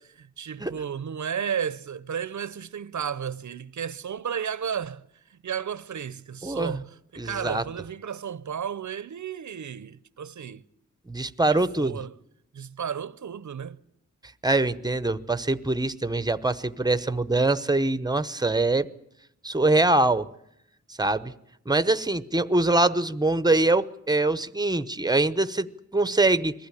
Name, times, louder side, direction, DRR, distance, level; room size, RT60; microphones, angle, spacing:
voice 1, 0.0-5.0 5.3-10.6 11.5-12.1 12.5-13.8, right 8 dB, 70° right, 0.8 m, -33 dB
voice 2, 6.4-6.8 7.2-7.6 11.1-12.0 14.4-18.9 19.4-20.3 21.0-21.3 21.7-26.5, right 2 dB, 15° right, 0.8 m, -23 dB
22.0 x 15.0 x 9.9 m
wide cardioid pair, 105°, 30 cm